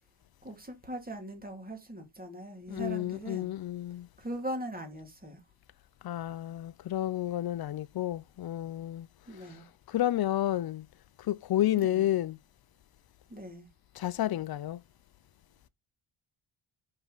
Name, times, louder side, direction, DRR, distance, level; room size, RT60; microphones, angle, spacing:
voice 1, 0.4-3.5 4.2-5.4 9.3-9.7 11.8-12.1 13.3-13.7, right 1 dB, 15° right, 2.4 m, -40 dB
voice 2, 2.7-4.1 6.0-9.1 9.9-10.9 11.2-12.4 14.0-14.8, left 13 dB, 50° left, 0.5 m, -30 dB
5.6 x 5.6 x 3.9 m
wide cardioid pair, 125°, 50 cm